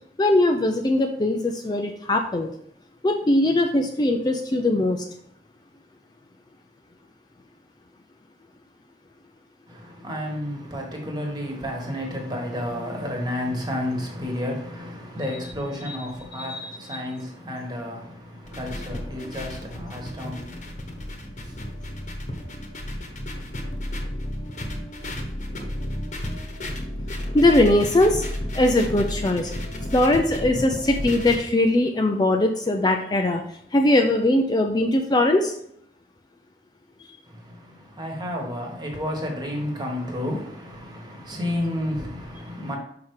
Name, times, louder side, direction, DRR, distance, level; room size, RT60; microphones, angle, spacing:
voice 1, 0.2-2.5 3.0-5.0 15.9-16.0 16.4-17.0 27.3-28.2 28.5-29.5 29.9-33.4 33.7-35.5, left 1 dB, 25° left, 0.4 m, -21 dB
voice 2, 9.7-21.6 37.3-42.8, left 1 dB, 25° right, 1.4 m, -31 dB
sound 1, 18.4-31.4, left 1 dB, 40° left, 1.1 m, -32 dB
5.7 x 4.7 x 4.7 m
head